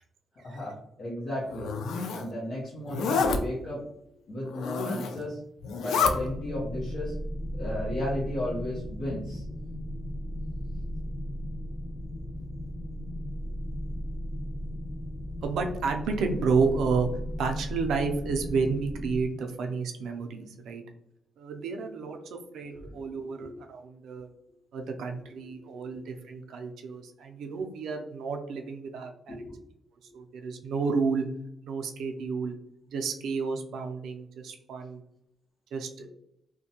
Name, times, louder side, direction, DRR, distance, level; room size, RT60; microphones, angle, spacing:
voice 1, 0.4-1.7 2.1-3.8 4.3-5.4 5.7-7.1 7.6-9.4 23.4-23.5 25.6-26.0 29.3-29.6 30.1-30.2, left 1 dB, 45° left, -8 dB, 0.8 m, -34 dB
Zipper (clothing), 1.5-2.3 2.9-3.4 4.5-5.2 5.6-6.1, left 5 dB, 80° left, 0.3 m, -28 dB
sound 1, 6.0-19.2, equal, 15° left, 1.0 m, -36 dB
voice 2, 15.4-20.8 21.4-24.3 24.7-29.3 30.1-31.3 31.6-32.5 32.9-35.0 35.7-36.1, right 4 dB, 75° right, 4 dB, 0.4 m, -31 dB
2.5 x 2.1 x 2.7 m, 0.76 s
wide cardioid pair, 170°, 0 cm